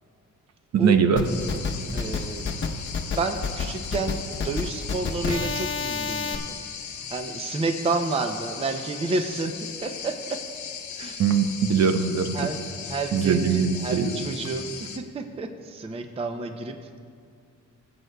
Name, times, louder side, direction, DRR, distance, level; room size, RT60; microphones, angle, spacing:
voice 1, 0.7-1.3 11.2-12.4 13.1-14.1, right 6 dB, 60° right, 8 dB, 0.7 m, -21 dB
sound 1, 1.2-15.0, left 7 dB, 70° left, 0.9 m, -38 dB
sound 2, 1.2-6.4, left 5 dB, 40° left, 0.8 m, -29 dB
voice 2, 1.9-2.5 3.1-6.6 7.1-9.5 9.8-10.4 11.0-11.2 12.3-12.6 12.9-16.8, right 3 dB, 20° right, 6 dB, 0.4 m, -30 dB
23.0 x 7.8 x 2.2 m, 2.3 s
wide cardioid pair, 165°, 30 cm